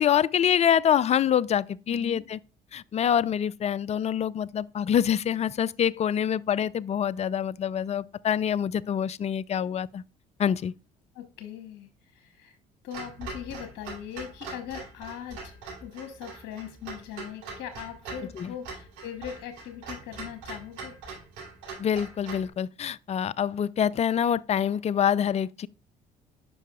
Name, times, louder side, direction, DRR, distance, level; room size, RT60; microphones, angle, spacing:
voice 1, 0.0-2.4 2.7-10.0 10.4-10.7 18.4-18.5 21.8-25.7, left 9 dB, 35° left, 0.4 m, -25 dB
voice 2, 1.9-2.2 11.1-12.6 12.8-21.0, left 9 dB, 65° left, 1.1 m, -40 dB
Clock, 12.9-22.5, right 4 dB, 80° right, 3.7 m, -42 dB
9.8 x 5.5 x 2.4 m
hypercardioid pair, 55°, 20 cm